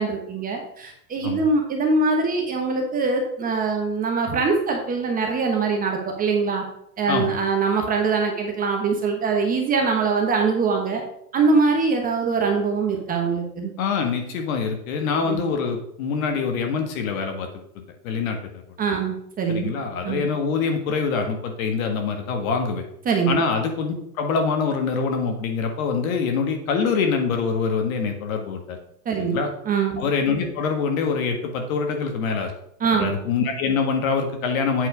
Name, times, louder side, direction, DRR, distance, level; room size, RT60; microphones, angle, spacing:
voice 1, 0.0-6.6 7.0-11.0 11.3-13.7 15.2-15.4 18.8-19.7 20.0-20.2 23.0-23.4 29.0-29.4 29.6-30.0 32.8-33.1, right 4 dB, 15° right, 2 dB, 1.0 m, -23 dB
voice 2, 13.8-18.6 19.5-22.8 23.3-28.8 29.2-29.5 30.0-32.5 32.9-34.9, left 5 dB, 55° left, 4 dB, 1.8 m, -25 dB
8.2 x 4.4 x 5.1 m, 0.73 s
hypercardioid pair, 135°, 49 cm